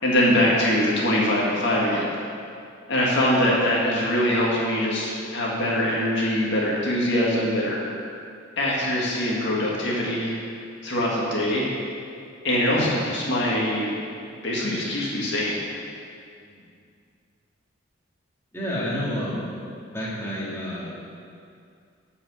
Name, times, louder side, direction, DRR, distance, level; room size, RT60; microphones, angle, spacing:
voice 1, 0.0-2.1 2.9-7.8 8.6-10.3 10.8-11.7 12.4-13.9 14.4-15.6, left 1 dB, 60° left, -4 dB, 1.9 m, -23 dB
voice 2, 12.7-13.0 16.4-16.7 18.5-19.5 19.9-20.9, equal, 15° left, -8 dB, 2.4 m, -30 dB
10.5 x 5.6 x 6.7 m, 2.4 s
head